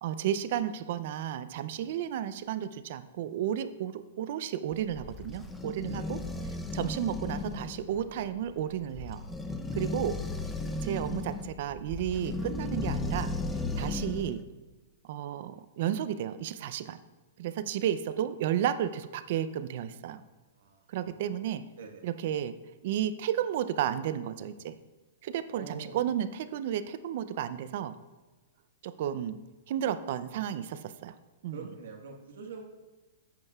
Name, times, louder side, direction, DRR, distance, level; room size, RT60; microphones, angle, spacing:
voice 1, 0.0-6.2 6.7-9.2 9.7-10.2 10.8-13.3 13.8-14.4 15.0-17.0 17.4-20.2 20.9-21.7 22.0-22.5 22.8-24.8 25.2-28.0 28.8-29.4 29.7-31.2 31.4-31.6, right 10 dB, 55° right, 13 dB, 0.5 m, -32 dB
sound 1, 4.7-14.4, left 2 dB, 10° left, 0.6 m, -35 dB
voice 2, 20.5-21.2 21.8-22.0 25.5-26.0 31.5-32.6, right 4 dB, 75° right, 2 dB, 1.5 m, -46 dB
11.0 x 8.8 x 2.4 m, 1.2 s
hypercardioid pair, 140°, 0 cm